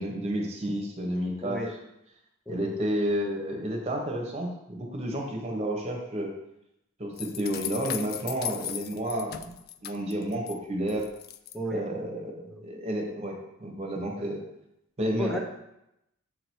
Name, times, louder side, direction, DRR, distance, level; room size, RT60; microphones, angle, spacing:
voice 1, 0.0-1.6 2.5-6.3 7.0-9.5 9.8-11.1 11.7-14.4 15.0-15.4, right 1 dB, 30° right, 0 dB, 1.2 m, -31 dB
voice 2, 1.4-1.7 2.5-2.7 11.5-11.8 12.5-12.6 15.2-15.4, left 1 dB, 5° left, 0 dB, 0.8 m, -33 dB
sound 1, 7.2-10.5 10.9-11.6, left 12 dB, 45° left, 0.3 m, -37 dB
7.6 x 3.0 x 4.6 m, 0.82 s
head